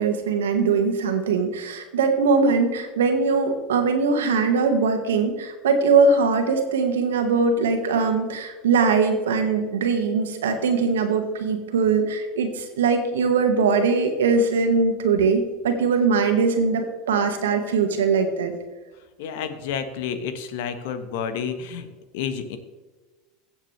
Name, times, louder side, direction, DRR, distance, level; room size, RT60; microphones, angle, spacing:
voice 1, 0.0-18.5, right 4 dB, 90° right, 5 dB, 1.6 m, -21 dB
voice 2, 19.2-21.9 22.1-22.6, left 7 dB, 70° left, 10 dB, 1.2 m, -30 dB
16.0 x 7.3 x 3.3 m, 1.3 s
hypercardioid pair, 95°, 0 cm